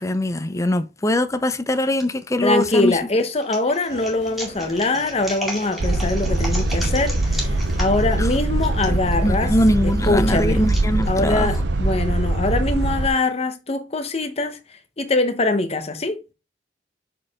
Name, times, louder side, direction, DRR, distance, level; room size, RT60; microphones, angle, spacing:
voice 1, 0.0-3.0 8.2-8.3 8.9-11.5, left 1 dB, 15° left, 0.5 m, -22 dB
sound 1, 1.5-2.0 2.6-11.6, equal, ahead, 2.0 m, -35 dB
voice 2, 2.4-9.5 10.1-10.6 11.1-16.3, left 2 dB, 35° left, 1.0 m, -23 dB
Human voice, 3.9-9.1, right 1 dB, 55° right, 2.6 m, -40 dB
sound 2, 5.8-13.1, right 2 dB, 75° right, 0.7 m, -22 dB
6.4 x 5.0 x 3.6 m
head